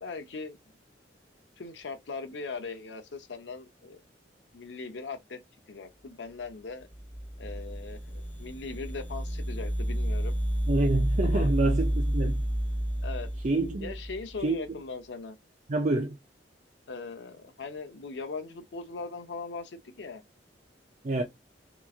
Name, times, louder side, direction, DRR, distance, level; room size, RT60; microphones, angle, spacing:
voice 1, 0.0-0.6 1.6-4.0 4.5-5.4 5.7-6.9 7.4-10.4 11.2-11.5 13.0-13.3 13.8-15.4 16.9-20.2 21.2-21.3, left 4 dB, 80° left, 0.6 m, -39 dB
sound 1, 6.9-14.4, equal, 10° left, 0.7 m, -30 dB
voice 2, 10.7-12.4 13.4-14.0 14.4-14.6 15.7-16.2 21.0-21.2, right 2 dB, 45° right, 0.5 m, -27 dB
3.0 x 2.4 x 2.4 m
head